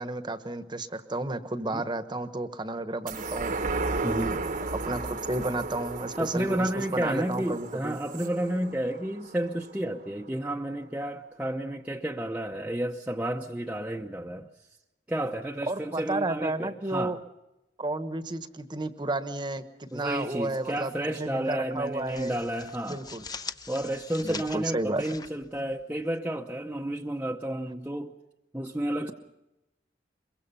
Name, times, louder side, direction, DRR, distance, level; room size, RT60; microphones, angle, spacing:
voice 1, 0.0-3.5 4.7-8.0 15.7-17.2 17.8-20.9 21.2-22.4 22.8-23.2 24.2-25.0, right 2 dB, 25° right, 1.1 m, -32 dB
sound 1, 3.1-9.9 10.3-10.4, right 3 dB, 45° right, 1.1 m, -34 dB
voice 2, 4.0-4.4 6.2-14.5 15.1-17.2 19.9-23.0 23.7-28.2 28.5-29.1, right 1 dB, 10° right, 0.8 m, -31 dB
sound 2, 19.9-20.8 21.1-21.3 21.7-26.2, left 4 dB, 20° left, 0.7 m, -43 dB
23.0 x 23.0 x 5.6 m
head